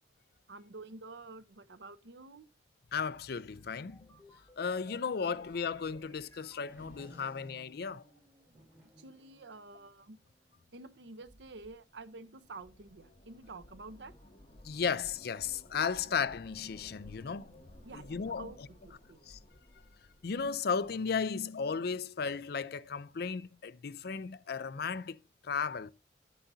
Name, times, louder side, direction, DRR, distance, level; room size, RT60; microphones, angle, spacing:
voice 1, 0.5-2.5 9.0-10.2 10.7-14.1 17.8-19.2, right 3 dB, 80° right, 0.8 m, -49 dB
voice 2, 2.9-4.1 4.6-8.0 14.6-17.5 17.9-18.5 19.3-19.4 20.2-25.2 25.4-25.9, left 6 dB, 60° left, 0.5 m, -35 dB
sound 1, 3.4-7.6, equal, 15° left, 3.8 m, -60 dB
Race car auto racing / Accelerating revving vroom, 3.5-19.5, equal, 15° right, 6.5 m, -64 dB
sound 2, 11.7-21.0, left 1 dB, 35° left, 2.2 m, -57 dB
11.0 x 9.3 x 2.7 m
head